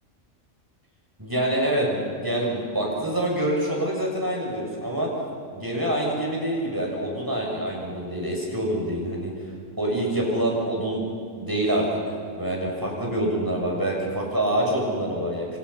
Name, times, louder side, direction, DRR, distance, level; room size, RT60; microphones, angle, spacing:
voice 1, 1.2-5.1 5.5-9.3 9.8-11.1 11.4-15.5, right 1 dB, 15° right, -2 dB, 6.5 m, -26 dB
27.5 x 26.0 x 5.7 m, 2.3 s
omnidirectional pair, 1.4 m